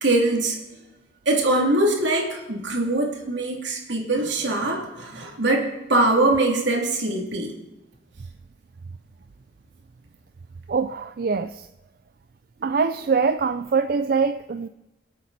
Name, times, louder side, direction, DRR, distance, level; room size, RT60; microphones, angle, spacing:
voice 1, 0.0-0.6 1.3-7.5, right 2 dB, 75° right, 0 dB, 2.7 m, -22 dB
voice 2, 10.7-11.7 12.6-14.7, right 5 dB, 50° right, 11 dB, 0.3 m, -23 dB
25.5 x 8.5 x 4.1 m, 1.0 s
head